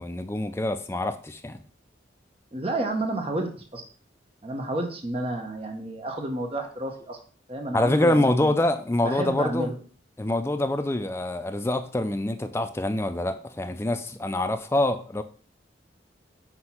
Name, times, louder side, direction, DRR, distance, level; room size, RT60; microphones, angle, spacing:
voice 1, 0.0-1.6 7.7-9.7 10.2-15.2, left 1 dB, 15° left, 8 dB, 0.4 m, -25 dB
voice 2, 2.5-3.8 4.4-7.2 7.5-8.5 9.0-9.8, right 1 dB, 30° right, 3 dB, 0.8 m, -30 dB
6.0 x 2.9 x 5.6 m, 0.44 s
head